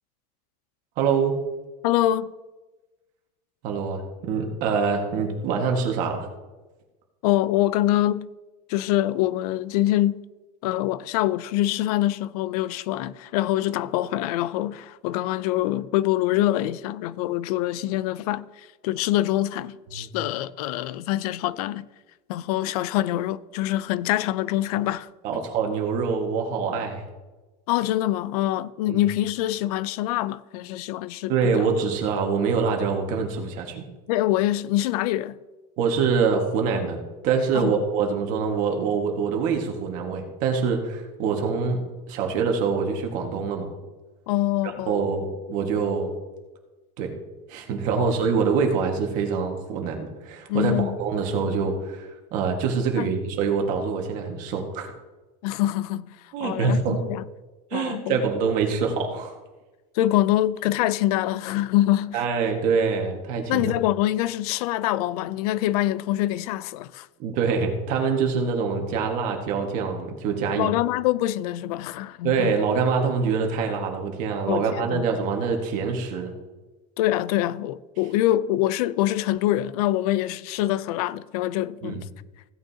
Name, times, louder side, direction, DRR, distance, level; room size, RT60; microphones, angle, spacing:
voice 1, 1.0-1.4 3.6-6.3 19.9-20.1 25.2-27.0 28.9-29.0 31.3-33.8 35.8-41.8 42.1-43.7 44.6-46.1 47.0-47.1 47.5-54.9 56.3-57.0 57.7-59.3 62.1-63.7 67.2-70.7 72.2-76.3 81.8-82.0, right 5 dB, 45° right, 1.6 m, -25 dB
voice 2, 1.8-2.3 7.2-8.3 8.7-10.2 10.6-18.5 18.8-21.9 22.3-25.1 27.7-31.6 34.1-35.4 37.5-37.7 44.3-45.0 48.0-48.1 50.5-50.9 53.0-53.1 55.4-56.1 56.4-57.2 57.7-58.2 60.0-62.2 63.5-67.1 70.6-72.6 74.5-75.1 77.0-82.0, left 14 dB, 90° left, 0.5 m, -25 dB
16.0 x 8.8 x 2.8 m
cardioid pair, 175°, 19 cm